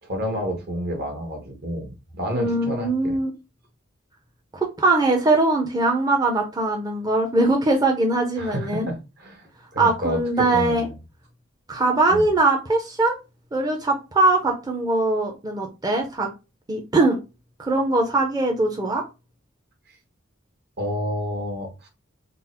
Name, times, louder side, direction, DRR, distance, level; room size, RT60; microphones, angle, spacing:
voice 1, 0.0-3.2 8.4-11.0 12.1-12.3 20.8-21.9, equal, 55° right, 1.3 m, -30 dB
voice 2, 2.3-3.3 4.5-8.9 9.8-10.9 11.7-13.2 13.5-16.3 16.7-17.2 17.6-19.0, right 2 dB, 20° right, 0.6 m, -21 dB
3.8 x 2.0 x 4.3 m
head